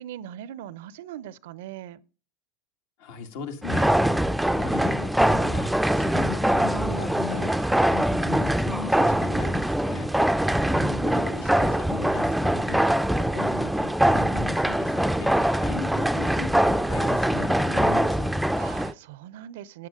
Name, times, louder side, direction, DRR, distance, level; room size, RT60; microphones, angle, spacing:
voice 1, 0.0-2.0 10.7-11.9 18.5-19.9, right 11 dB, 65° right, 0.6 m, -40 dB
voice 2, 3.0-4.2 4.4-10.1 11.0-12.8 13.2-15.3 15.6-18.4, left 6 dB, 65° left, 2.0 m, -37 dB
sound 1, 3.6-18.9, right 1 dB, 5° right, 0.5 m, -23 dB
14.0 x 9.3 x 3.7 m
hypercardioid pair, 85°, 0 cm